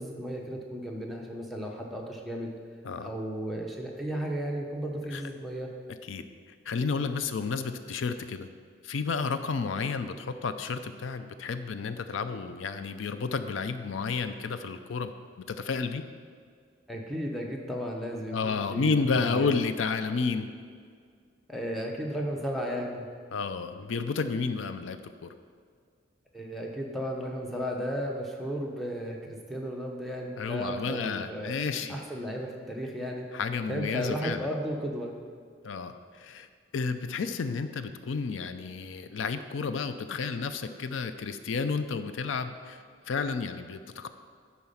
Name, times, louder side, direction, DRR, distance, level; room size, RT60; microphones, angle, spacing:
voice 1, 0.0-2.5 3.0-5.7 16.9-19.6 21.5-23.1 26.3-31.6 31.9-33.3 33.7-35.1, equal, ahead, -1 dB, 0.8 m, -34 dB
voice 2, 6.7-8.5 8.8-15.1 15.5-16.0 18.3-20.5 23.3-25.3 30.4-32.0 33.3-34.5 35.6-36.5 36.7-44.1, left 4 dB, 90° left, 10 dB, 0.5 m, -31 dB
10.5 x 4.2 x 5.6 m, 2.1 s
head